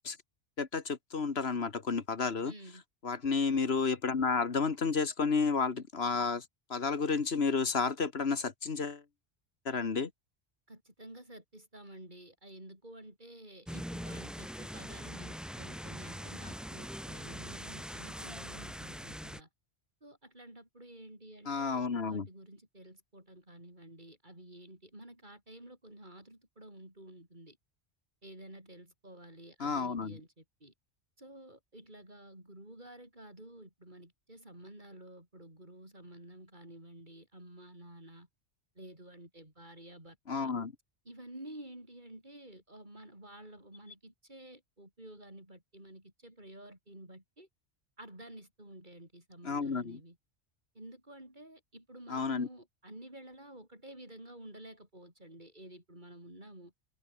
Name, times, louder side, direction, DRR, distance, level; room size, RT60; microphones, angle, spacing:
voice 1, 0.6-2.5 3.0-6.4 6.7-9.0 9.7-10.1 21.5-22.3 29.6-30.2 40.3-40.7 49.5-50.0 52.1-52.5, left 5 dB, 70° left, 1.9 m, -31 dB
voice 2, 2.4-2.8 10.7-19.5 20.0-27.6 28.2-30.7 31.2-38.3 38.8-40.5 41.1-47.5 48.0-50.2 50.7-56.7, right 1 dB, 45° right, 7.3 m, -51 dB
sound 1, 13.7-19.4, equal, ahead, 2.1 m, -42 dB
omnidirectional pair, 1.1 m